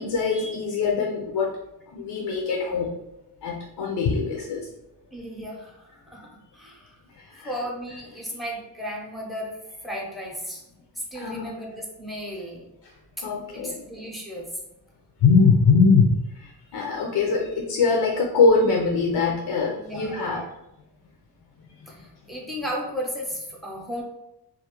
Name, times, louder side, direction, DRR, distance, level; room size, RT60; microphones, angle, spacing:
voice 1, 0.0-1.5 1.9-2.9 3.4-4.7 7.2-7.6 11.2-11.5 13.2-13.8 15.2-20.4, left 4 dB, 75° left, -1 dB, 0.5 m, -22 dB
voice 2, 5.1-6.3 6.5-7.0 7.4-9.6 9.8-10.6 11.1-12.7 13.2-13.3 13.5-14.5 19.7-20.5 21.9-24.0, equal, ahead, -2 dB, 0.6 m, -35 dB
2.3 x 2.0 x 2.9 m, 0.86 s
cardioid pair, 70°, 41 cm